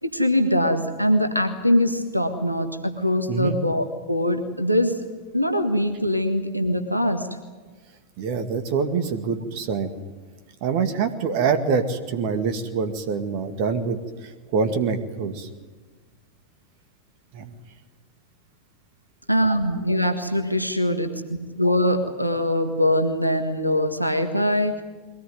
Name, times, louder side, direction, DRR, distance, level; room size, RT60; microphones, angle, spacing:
voice 1, 0.0-5.0 5.3-7.3 19.3-24.8, left 1 dB, 90° right, 7 dB, 1.6 m, -22 dB
voice 2, 3.3-3.6 8.2-9.9 10.6-15.5 17.3-17.5, right 5 dB, 45° right, 9 dB, 2.1 m, -25 dB
22.5 x 18.0 x 9.5 m, 1.3 s
figure-of-eight pair, 90°, 0 cm